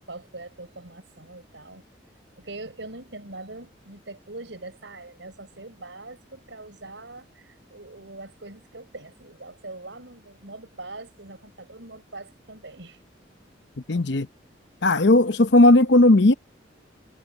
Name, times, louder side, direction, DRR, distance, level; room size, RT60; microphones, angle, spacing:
voice 1, 0.1-1.8 2.4-13.0 13.9-14.1, right 2 dB, 70° right, 5.8 m, -42 dB
voice 2, 13.9-14.3 14.8-16.3, left 2 dB, 65° left, 0.9 m, -16 dB
head